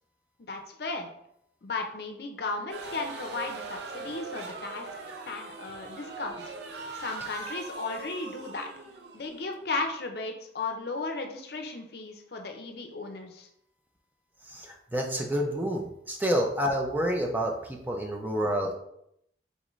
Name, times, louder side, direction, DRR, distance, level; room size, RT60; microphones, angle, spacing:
voice 1, 0.4-1.1 1.6-6.5 7.0-8.7 9.1-13.5, left 3 dB, 60° left, 4 dB, 0.6 m, -35 dB
sound 1, 2.7-9.9, right 3 dB, 70° right, 0.6 m, -41 dB
voice 2, 14.5-18.7, equal, 10° right, 1 dB, 0.5 m, -29 dB
4.0 x 3.7 x 3.1 m, 0.75 s
head